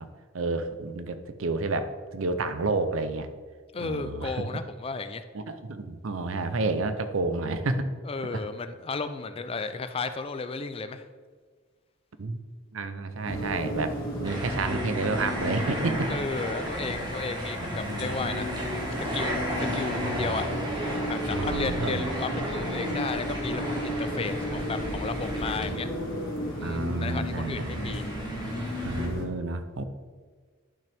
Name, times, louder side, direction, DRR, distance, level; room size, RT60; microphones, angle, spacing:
voice 1, 0.3-3.3 3.8-4.5 5.3-7.9 8.3-8.4 12.2-12.4 12.7-16.1 17.6-18.4 20.0-20.5 21.3-22.1 25.6-25.8 26.6-27.9 28.8-29.8, right 3 dB, 75° right, 10 dB, 0.6 m, -30 dB
voice 2, 3.7-5.2 8.0-11.0 16.1-18.5 18.8-20.5 21.1-25.9 26.6-28.1, left 4 dB, 25° left, 10 dB, 0.4 m, -34 dB
sound 1, 13.2-29.2, left 1 dB, 45° left, 2.1 m, -33 dB
sound 2, 14.2-26.1 26.4-29.1, equal, 20° right, 1.3 m, -35 dB
10.5 x 6.0 x 3.5 m, 1.5 s
head